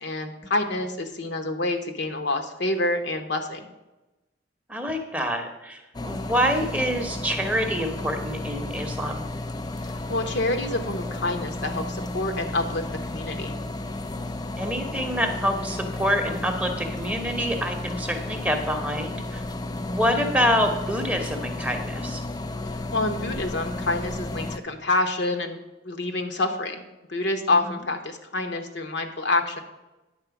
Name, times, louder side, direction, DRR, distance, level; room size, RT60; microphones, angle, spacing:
voice 1, 0.0-3.7 10.1-12.8 13.1-13.6 22.9-25.6 25.8-29.6, left 2 dB, 65° left, 5 dB, 1.0 m, -27 dB
voice 2, 4.7-9.3 14.6-19.4 19.8-22.2 27.6-27.7, equal, 10° right, 4 dB, 0.9 m, -26 dB
sound 1, 5.9-24.6, left 2 dB, 20° left, 0.4 m, -33 dB
9.8 x 4.4 x 7.0 m, 1.0 s
head